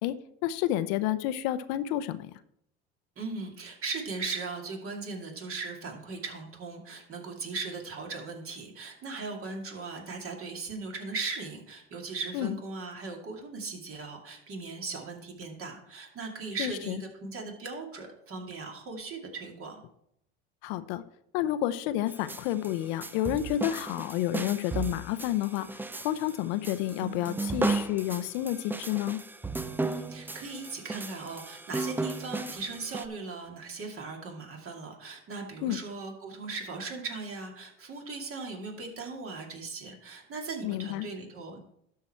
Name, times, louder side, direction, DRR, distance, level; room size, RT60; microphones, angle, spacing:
voice 1, 0.4-2.3 12.3-12.6 16.6-17.0 20.6-21.0 21.3-29.2 35.6-35.8 40.6-41.1, left 13 dB, 70° left, 12 dB, 0.7 m, -30 dB
voice 2, 3.2-19.8 29.8-41.6, right 4 dB, 40° right, 1 dB, 2.5 m, -38 dB
sound 1, 22.1-33.1, right 3 dB, 5° right, 0.4 m, -35 dB
12.5 x 4.8 x 4.4 m, 0.74 s
hypercardioid pair, 90°, 33 cm